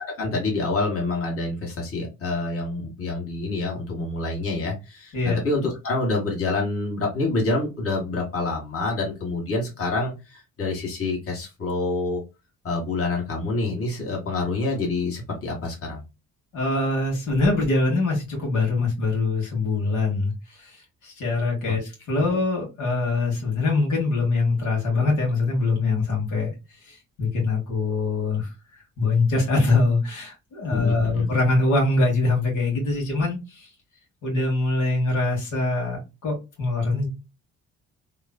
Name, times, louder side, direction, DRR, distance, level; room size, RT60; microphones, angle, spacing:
voice 1, 0.2-12.2 12.6-16.0 30.7-31.3, left 3 dB, 50° left, 1.4 m, -27 dB
voice 2, 16.5-20.3 20.6-20.8 21.0-26.5 26.9-28.5 29.0-33.7 34.2-37.1, left 3 dB, 80° left, 1.5 m, -23 dB
3.0 x 2.6 x 2.2 m
cardioid pair, 90°, 30 cm